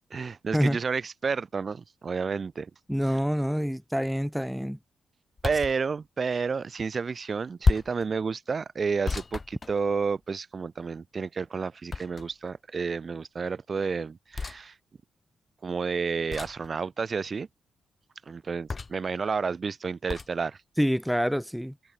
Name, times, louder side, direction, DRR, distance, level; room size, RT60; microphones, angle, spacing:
voice 1, 0.1-2.7 5.4-14.7 15.6-17.5 18.3-20.6, right 5 dB, 45° right, 2.3 m, -30 dB
voice 2, 2.9-4.8 20.8-21.7, equal, ahead, 1.4 m, -26 dB
sound 1, 5.4-5.8 7.6-8.1 9.1-10.2 11.9-12.5 14.3-14.6 16.3-16.7 18.7-19.1 20.1-20.3, left 4 dB, 35° left, 0.4 m, -30 dB
cardioid pair, 85°, 0 cm